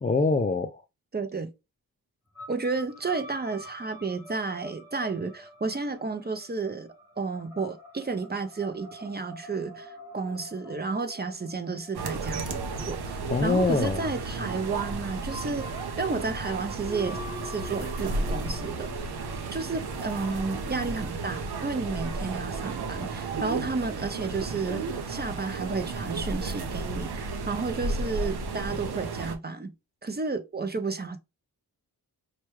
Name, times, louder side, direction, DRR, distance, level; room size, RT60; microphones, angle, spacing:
voice 1, 0.0-0.7 13.3-14.1, left 3 dB, 20° left, 0.3 m, -24 dB
voice 2, 1.1-1.5 2.5-15.7 16.0-19.2 19.5-29.7 30.0-31.2, right 4 dB, 25° right, 0.6 m, -32 dB
sound 1, 2.4-20.5, left 1 dB, 10° right, 1.0 m, -46 dB
sound 2, 11.9-29.4, right 3 dB, 75° right, 0.8 m, -33 dB
4.5 x 2.2 x 3.0 m
cardioid pair, 70°, 39 cm